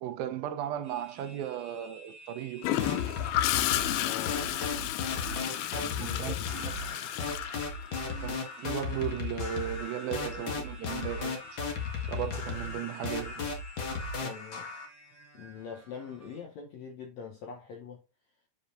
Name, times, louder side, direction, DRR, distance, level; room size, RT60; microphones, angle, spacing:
voice 1, 0.0-2.8 6.0-6.7 8.2-11.6 12.1-13.6, right 11 dB, 80° right, 2.5 m, -36 dB
sound 1, 0.8-16.4, right 1 dB, 5° left, 1.8 m, -53 dB
Gurgling / Toilet flush, 2.6-8.4 10.4-10.6, left 14 dB, 90° left, 2.5 m, -32 dB
sound 2, 2.8-14.9, left 4 dB, 50° left, 1.6 m, -35 dB
voice 2, 4.0-4.4 5.0-6.5 14.2-14.7 15.3-18.0, left 6 dB, 70° left, 1.7 m, -44 dB
10.0 x 5.1 x 2.6 m
omnidirectional pair, 4.2 m